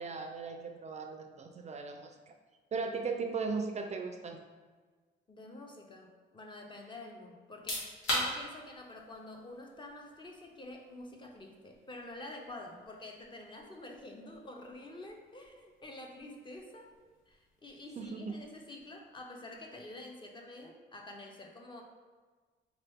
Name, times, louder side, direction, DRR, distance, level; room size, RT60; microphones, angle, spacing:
voice 1, 0.0-2.3 2.7-4.4 18.0-18.3, right 4 dB, 35° right, 5 dB, 0.3 m, -37 dB
voice 2, 5.3-16.9 17.3-21.8, left 2 dB, 25° left, 2 dB, 0.6 m, -48 dB
sound 1, 7.4-20.1, equal, 80° left, 1.4 m, -44 dB
3.4 x 2.9 x 3.4 m, 1.4 s
cardioid pair, 90°, 20 cm